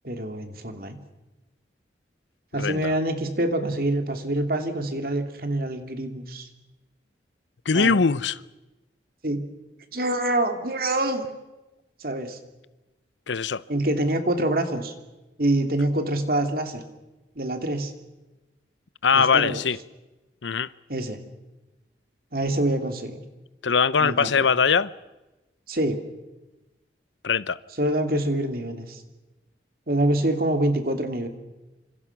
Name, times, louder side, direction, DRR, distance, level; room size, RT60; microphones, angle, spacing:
voice 1, 0.0-1.0 2.5-6.5 7.7-8.0 9.2-9.5 9.9-11.2 12.0-12.4 13.7-14.9 15.4-16.8 17.4-17.9 19.1-19.6 20.9-21.2 22.3-23.2 24.0-24.4 25.7-26.0 27.8-29.0 29.9-31.3, right 1 dB, 55° right, 2.8 m, -26 dB
voice 2, 2.6-2.9 7.7-8.4 13.3-13.6 19.0-19.8 20.4-20.7 23.6-24.9 27.2-27.6, left 5 dB, 90° left, 0.7 m, -21 dB
28.0 x 26.0 x 6.0 m
head